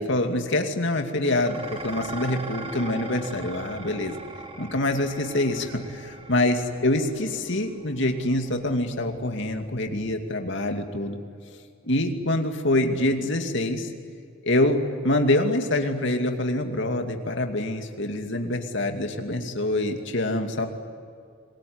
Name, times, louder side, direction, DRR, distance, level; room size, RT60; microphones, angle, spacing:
voice 1, 0.0-4.2 4.6-6.6 6.8-11.2 11.9-13.9 14.4-20.7, left 1 dB, 60° left, 5 dB, 2.5 m, -25 dB
Dishes pots and pans, 1.4-10.2, right 3 dB, 25° right, 2.1 m, -41 dB
27.5 x 21.0 x 9.7 m, 2.3 s
head